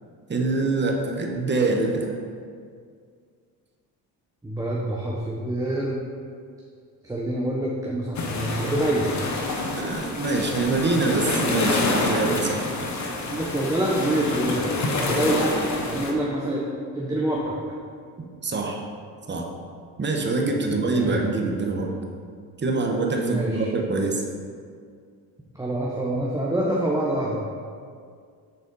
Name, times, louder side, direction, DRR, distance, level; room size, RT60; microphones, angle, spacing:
voice 1, 0.3-2.1 9.7-12.9 18.4-18.8 19.3-19.5 20.0-21.9 22.6-24.2, right 3 dB, 25° right, 1 dB, 1.1 m, -25 dB
voice 2, 4.4-6.0 7.0-9.1 13.3-14.6 15.0-17.6 20.6-21.2 23.2-23.7 25.5-27.4, right 1 dB, 10° right, -4 dB, 1.0 m, -26 dB
sound 1, 8.1-16.1, left 3 dB, 45° left, 1.1 m, -27 dB
6.7 x 4.1 x 5.3 m, 2.1 s
supercardioid pair, 75°, 40 cm